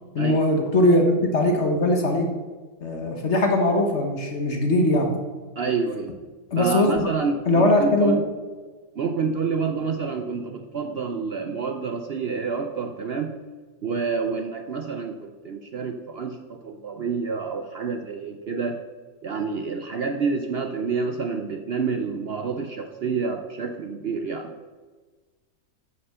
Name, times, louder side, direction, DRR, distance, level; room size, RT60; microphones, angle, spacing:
voice 1, 0.1-2.3 2.8-5.1 6.5-7.1 7.4-8.2, left 1 dB, 45° left, 3 dB, 1.3 m, -20 dB
voice 2, 5.6-6.1 6.6-8.2 9.0-13.4 13.8-18.8 19.2-24.5, right 5 dB, 75° right, 5 dB, 0.5 m, -28 dB
9.2 x 6.0 x 6.8 m, 1.4 s
omnidirectional pair, 1.8 m